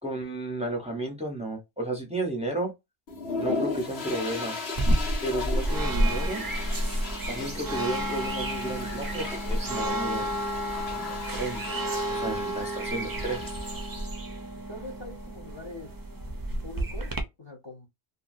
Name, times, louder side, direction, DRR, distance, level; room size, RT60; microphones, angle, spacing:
voice 1, 0.0-2.7 3.4-4.6 5.2-6.4 7.3-10.4 10.9-11.6 12.1-13.4, right 2 dB, 5° right, 0.9 m, -33 dB
sound 1, 3.1-14.1, left 3 dB, 80° left, 1.3 m, -37 dB
sound 2, 4.8-17.2, right 1 dB, 25° right, 0.5 m, -30 dB
voice 2, 14.4-15.9 16.6-17.9, left 2 dB, 30° left, 0.8 m, -43 dB
2.8 x 2.6 x 2.6 m
omnidirectional pair, 1.0 m